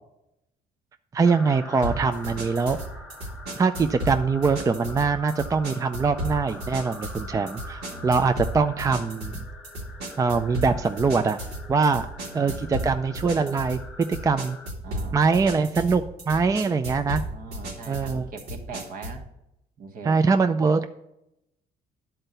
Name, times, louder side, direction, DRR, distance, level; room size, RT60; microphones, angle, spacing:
voice 1, 1.1-2.8 3.6-9.4 10.2-11.4 11.7-12.1 12.3-13.8 14.1-14.6 15.1-17.2 17.9-18.3 20.0-20.9, right 4 dB, 20° right, 8 dB, 0.4 m, -23 dB
sound 1, 1.2-14.7, left 2 dB, ahead, 1.4 m, -45 dB
sound 2, 1.8-19.3, right 1 dB, 80° right, 2.2 m, -35 dB
voice 2, 7.9-8.2 11.8-12.8 14.8-15.3 17.3-19.2 19.8-20.2, right 4 dB, 55° right, 5 dB, 1.4 m, -41 dB
11.0 x 4.5 x 6.7 m, 0.84 s
cardioid pair, 110°, 17 cm